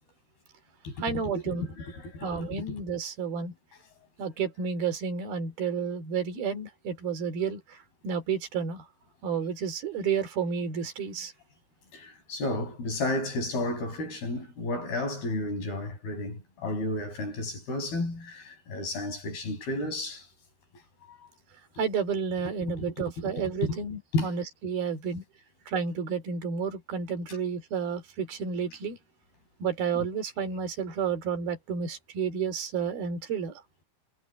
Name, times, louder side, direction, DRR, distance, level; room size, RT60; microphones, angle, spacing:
voice 1, 1.0-1.7 2.2-3.5 4.2-7.8 8.0-8.8 9.2-11.3 21.8-25.2 25.7-29.0 29.6-33.6, right 6 dB, 70° right, 4.8 m, -31 dB
voice 2, 1.5-2.6 11.9-20.3 21.1-21.2 22.6-23.8 24.1-24.3 30.0-30.1, left 2 dB, 70° left, 9.0 m, -32 dB
omnidirectional pair, 4.5 m